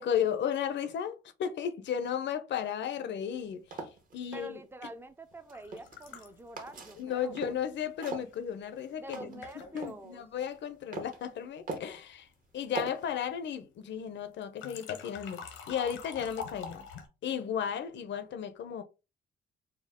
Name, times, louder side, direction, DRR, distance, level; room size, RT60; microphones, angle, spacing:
voice 1, 0.0-3.9 4.1-4.6 7.0-9.4 9.7-12.3 12.5-15.4 15.7-16.9 17.2-18.8, left 8 dB, 65° left, 0.7 m, -34 dB
sound 1, 3.3-4.4 5.3-6.2 6.6-7.7 8.0-10.0 10.4-11.2 11.7-12.0 12.7-13.1, right 3 dB, 45° right, 1.2 m, -41 dB
voice 2, 4.3-7.6 9.0-10.3, right 2 dB, 10° right, 0.6 m, -47 dB
sound 2, 5.5-8.3 9.0-9.1 9.4-9.9 14.4-17.1, left 6 dB, 90° left, 1.0 m, -46 dB
4.3 x 2.3 x 3.6 m
cardioid pair, 90°, 20 cm